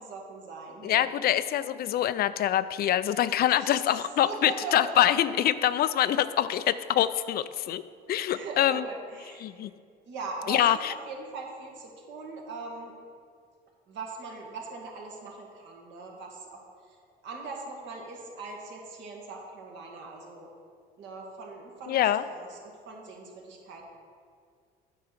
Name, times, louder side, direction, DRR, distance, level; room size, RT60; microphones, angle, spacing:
voice 1, 0.0-1.1 3.6-5.0 6.1-6.2 8.2-9.4 10.0-12.9 13.9-17.0 17.2-20.5 21.0-23.8, right 3 dB, 70° right, -1 dB, 2.0 m, -41 dB
voice 2, 0.8-7.8 8.1-8.8 9.4-9.7 10.5-10.9 21.9-22.2, left 11 dB, 55° left, 14 dB, 0.4 m, -25 dB
8.7 x 4.7 x 6.6 m, 2.2 s
supercardioid pair, 85°, 19 cm